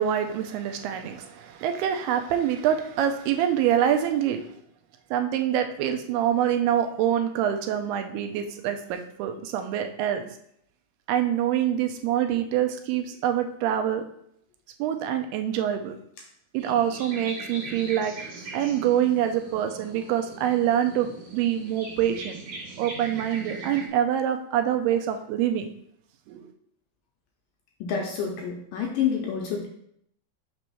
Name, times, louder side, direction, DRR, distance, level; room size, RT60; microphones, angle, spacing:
voice 1, 0.0-4.4 5.1-10.3 11.1-14.0 14.8-15.9 16.5-22.4 22.8-25.7 26.3-26.5, right 10 dB, 85° right, 6 dB, 2.6 m, -25 dB
sound 1, 16.6-23.9, right 3 dB, 55° right, 2.5 m, -40 dB
voice 2, 27.8-29.7, left 7 dB, 80° left, 0 dB, 2.1 m, -28 dB
6.1 x 3.0 x 5.5 m, 0.70 s
omnidirectional pair, 4.5 m